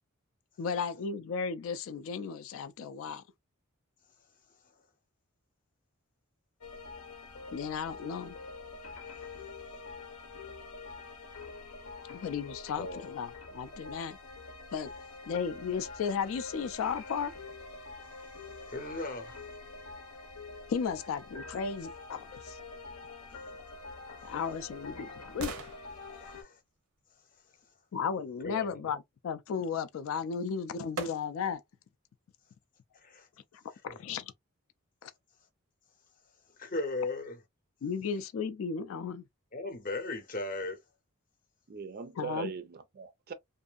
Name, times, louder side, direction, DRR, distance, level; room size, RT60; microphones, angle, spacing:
voice 1, 0.6-3.2 7.5-8.3 12.1-14.2 14.7-14.9 15.3-17.3 20.7-22.6 24.2-25.5 27.9-31.6 33.5-34.3 35.0-35.1 37.8-39.2 42.2-42.5, left 6 dB, 65° left, 0.3 m, -35 dB
sound 1, 6.6-26.4, left 3 dB, 85° left, 0.7 m, -46 dB
voice 2, 12.7-13.1 18.7-19.4 26.2-26.6 28.4-28.8 33.0-33.3 33.9-34.0 36.6-37.4 39.5-40.8, left 2 dB, 40° left, 0.7 m, -37 dB
sound 2, 24.1-28.0 30.1-30.2 31.0-31.7 32.1-32.2, right 4 dB, 85° right, 0.7 m, -45 dB
voice 3, 41.7-43.3, right 6 dB, 45° right, 0.4 m, -40 dB
2.6 x 2.5 x 2.3 m
head